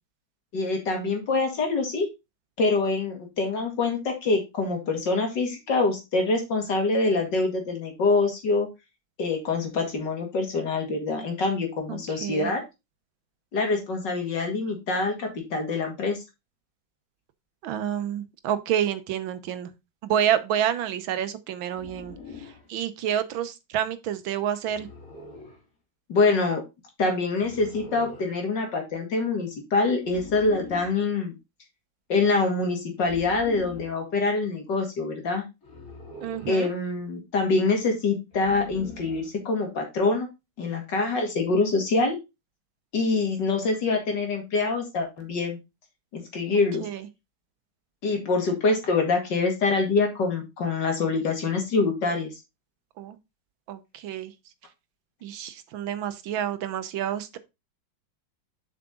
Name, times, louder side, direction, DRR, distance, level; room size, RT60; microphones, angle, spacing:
voice 1, 0.5-2.1 2.6-8.7 9.2-12.6 13.5-16.2 26.1-26.6 27.0-31.3 32.1-35.4 36.5-40.3 40.6-42.2 42.9-45.6 46.1-46.8 48.0-52.3, left 3 dB, 65° left, 2.7 m, -25 dB
voice 2, 11.9-12.5 17.6-19.7 20.0-22.1 22.7-24.9 36.2-36.7 46.5-47.1 53.0-53.2 53.7-54.3 55.2-57.4, right 10 dB, 85° right, 1.7 m, -29 dB
sound 1, 21.7-22.7 24.6-25.6 27.4-28.4 30.0-31.0 33.0-34.0 35.6-36.7 38.3-39.3, left 3 dB, 45° left, 3.0 m, -43 dB
7.4 x 5.9 x 3.8 m
omnidirectional pair, 2.1 m